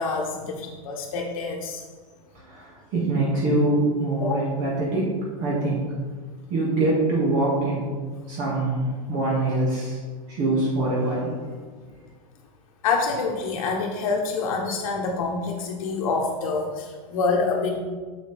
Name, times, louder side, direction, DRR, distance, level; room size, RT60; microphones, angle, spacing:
voice 1, 0.0-1.8 4.2-4.4 12.8-17.8, left 4 dB, 70° left, 1 dB, 1.0 m, -26 dB
voice 2, 2.3-5.1 5.4-5.8 6.5-7.9 8.3-10.0 10.3-11.5, right 2 dB, 45° right, -5 dB, 2.0 m, -24 dB
6.9 x 6.2 x 3.4 m, 1.4 s
supercardioid pair, 135°, 18 cm